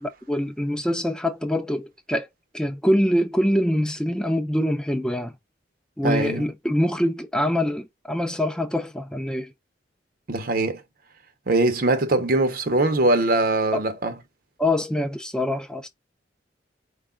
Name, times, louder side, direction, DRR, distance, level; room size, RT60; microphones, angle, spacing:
voice 1, 0.0-2.3 2.5-5.3 6.0-9.5 13.7-13.8 14.6-15.9, left 1 dB, 5° left, 0.5 m, -24 dB
voice 2, 6.0-6.4 10.3-10.8 11.5-14.1, right 2 dB, 50° right, 0.7 m, -22 dB
4.6 x 2.3 x 3.7 m
head